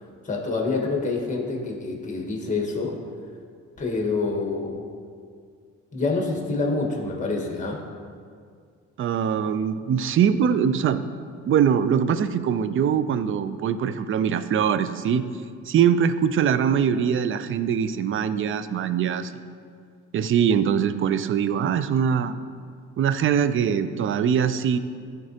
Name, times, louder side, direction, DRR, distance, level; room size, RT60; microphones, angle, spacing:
voice 1, 0.2-3.0 3.8-4.8 5.9-7.8, left 3 dB, 25° left, -1 dB, 1.3 m, -27 dB
voice 2, 9.0-11.0 11.4-15.2 15.7-19.3 20.1-22.3 23.0-24.8, right 8 dB, 45° right, 12 dB, 0.4 m, -22 dB
11.5 x 3.9 x 2.8 m, 2.1 s
cardioid pair, 90°, 30 cm